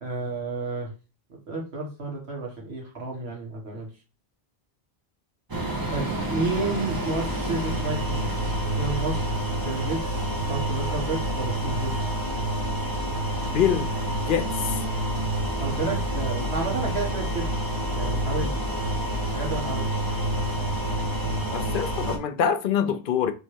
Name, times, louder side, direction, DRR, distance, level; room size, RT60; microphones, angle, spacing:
voice 1, 0.0-0.9 1.5-3.9 5.9-9.2 9.6-10.2 10.5-12.1 15.6-17.4 17.9-18.6 19.3-19.9, right 3 dB, 85° right, 1.8 m, -31 dB
sound 1, 5.5-22.2, right 1 dB, 25° right, 0.7 m, -28 dB
voice 2, 13.5-13.9 14.3-14.8 21.5-23.3, left 8 dB, 60° left, 0.7 m, -25 dB
3.4 x 3.3 x 4.4 m
omnidirectional pair, 1.1 m